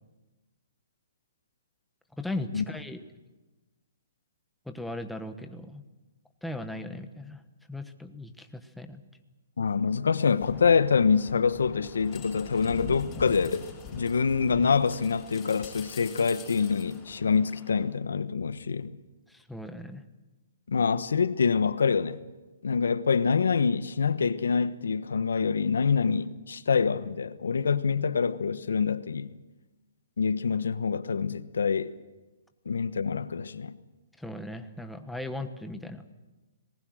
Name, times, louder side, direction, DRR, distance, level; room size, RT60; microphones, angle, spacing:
voice 1, 2.2-3.0 4.7-5.8 6.4-7.4 7.7-9.0 19.3-20.0 34.2-36.0, left 1 dB, ahead, 1.2 m, -37 dB
voice 2, 9.6-13.7 13.9-19.0 20.7-22.2 22.6-29.3 30.2-31.9 32.6-33.8, left 5 dB, 85° left, 1.1 m, -26 dB
sound 1, 10.4-17.8, left 4 dB, 20° left, 6.0 m, -44 dB
26.5 x 20.0 x 6.4 m
hypercardioid pair, 150°, 0 cm